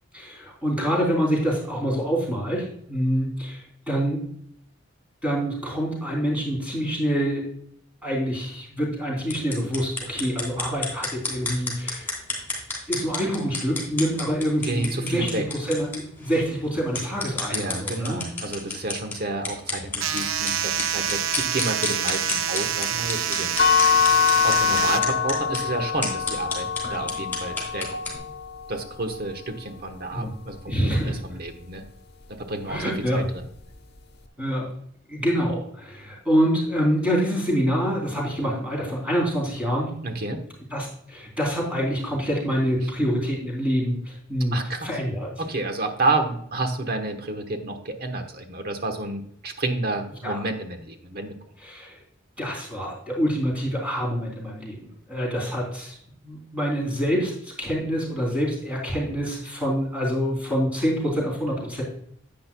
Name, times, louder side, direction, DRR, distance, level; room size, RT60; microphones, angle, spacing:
voice 1, 0.1-4.2 5.2-7.5 8.0-12.1 12.9-18.2 30.1-30.3 30.7-31.2 32.7-33.2 34.4-34.7 35.1-39.9 40.7-45.3 50.2-50.4 51.6-52.0 52.4-56.0 56.2-61.8, equal, 5° right, -3 dB, 3.4 m, -26 dB
sound 1, 9.2-28.2, left 3 dB, 10° left, 3.1 m, -33 dB
voice 2, 14.6-15.5 17.5-23.8 24.4-27.9 28.7-31.8 32.4-33.5 40.0-40.4 44.5-44.9 45.4-51.3, right 2 dB, 50° right, 6 dB, 1.2 m, -30 dB
sound 2, 20.0-25.0, right 9 dB, 85° right, 0.5 m, -27 dB
sound 3, 23.6-29.4, left 8 dB, 55° left, 0.9 m, -24 dB
10.5 x 8.7 x 2.3 m, 0.67 s
head